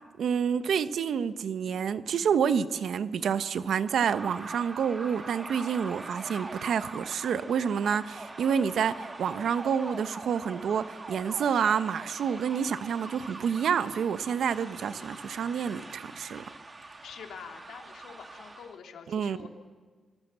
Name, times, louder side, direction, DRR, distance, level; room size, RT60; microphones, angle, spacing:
voice 1, 0.2-16.5 19.1-19.5, right 7 dB, 75° right, 1.0 m, -28 dB
sound 1, 3.9-18.8, right 2 dB, 30° right, 2.5 m, -43 dB
voice 2, 17.0-19.5, left 7 dB, 85° left, 2.8 m, -46 dB
28.0 x 23.0 x 7.5 m
cardioid pair, 85°, 0 cm